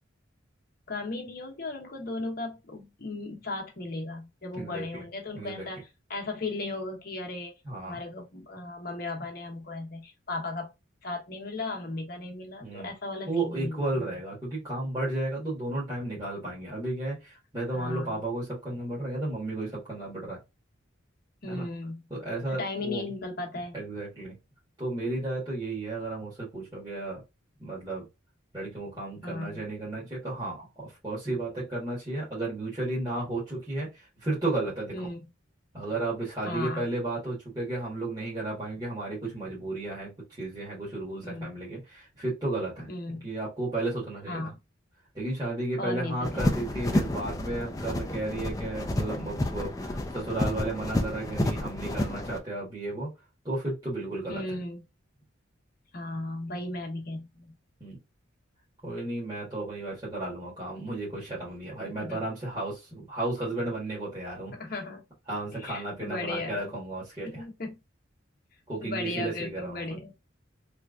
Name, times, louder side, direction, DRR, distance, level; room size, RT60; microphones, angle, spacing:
voice 1, 0.9-7.5 7.8-10.7 11.0-14.0 17.7-18.2 21.4-22.0 22.5-23.8 29.2-29.6 34.9-35.2 36.5-36.9 41.2-41.6 42.9-43.3 44.3-44.6 45.8-46.5 54.3-54.8 55.9-57.5 61.8-62.2 64.5-65.0 65.6-66.7 67.2-67.8 68.8-70.1, left 2 dB, 50° left, 1.0 m, -36 dB
voice 2, 4.6-5.0 5.3-5.7 7.6-8.0 12.6-12.9 13.3-20.4 21.5-21.7 22.1-23.0 23.7-24.3 24.8-27.2 27.6-28.0 28.5-35.1 35.7-40.1 40.4-42.9 43.2-44.5 45.1-53.1 53.4-54.4 57.8-58.0 58.8-64.5 65.3-67.4 68.7-70.0, right 2 dB, 20° right, 1.5 m, -33 dB
sound 1, 46.2-52.4, left 1 dB, 15° left, 0.4 m, -30 dB
3.3 x 3.0 x 2.4 m
head